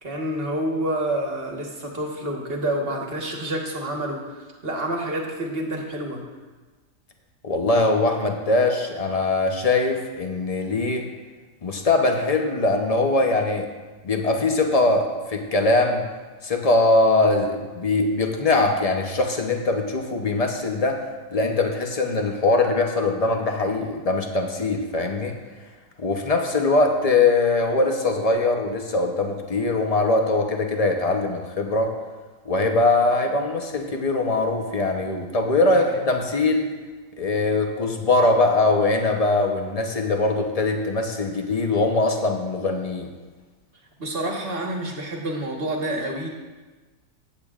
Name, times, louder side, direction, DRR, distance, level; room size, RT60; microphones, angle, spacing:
voice 1, 0.0-6.2 35.7-36.0 44.0-46.3, right 1 dB, 40° right, 0 dB, 1.4 m, -28 dB
voice 2, 7.4-11.1 11.6-13.7 14.0-16.0 16.4-21.0 21.3-25.3 26.0-31.9 32.4-36.7 37.2-43.1, left 2 dB, 35° left, 3 dB, 0.6 m, -22 dB
15.0 x 8.5 x 2.5 m, 1.3 s
omnidirectional pair, 1.8 m